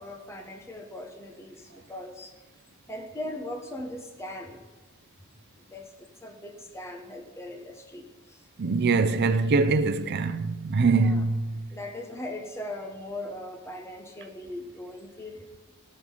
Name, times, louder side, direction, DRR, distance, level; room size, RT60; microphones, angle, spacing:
voice 1, 0.0-2.3 2.9-4.6 5.7-8.4 11.0-11.2 11.7-15.5, left 1 dB, 10° left, 0.8 m, -39 dB
voice 2, 8.6-11.6, right 4 dB, 50° right, 0.5 m, -23 dB
15.5 x 6.4 x 5.4 m
head